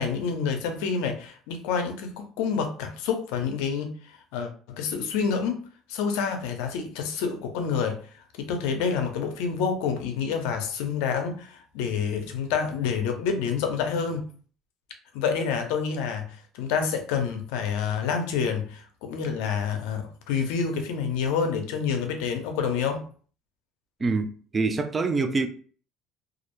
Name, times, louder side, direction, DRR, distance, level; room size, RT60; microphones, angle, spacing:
voice 1, 0.0-3.9 4.3-5.6 5.9-8.0 8.4-14.3 15.1-23.0, left 6 dB, 85° left, 0.5 m, -28 dB
voice 2, 24.0-25.5, right 3 dB, 25° right, 0.4 m, -25 dB
2.4 x 2.0 x 2.9 m
cardioid pair, 105°, 0 cm